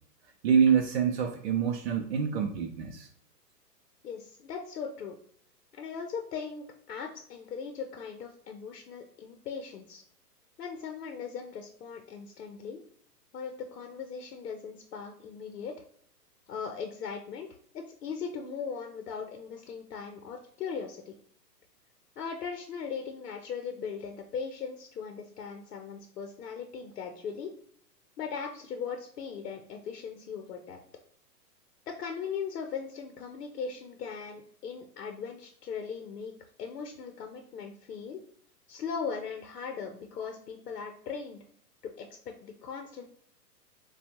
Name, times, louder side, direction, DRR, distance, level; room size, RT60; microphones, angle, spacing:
voice 1, 0.4-3.1, right 7 dB, 45° right, 1 dB, 0.6 m, -26 dB
voice 2, 4.0-5.2 5.7-10.0 10.6-12.8 13.3-15.7 16.5-17.5 17.7-21.1 22.2-27.5 28.2-30.8 31.9-36.3 36.6-38.2 38.7-41.4 41.8-43.0, left 6 dB, 70° left, 5 dB, 0.8 m, -39 dB
6.8 x 2.3 x 2.9 m, 0.62 s
hypercardioid pair, 135°, 49 cm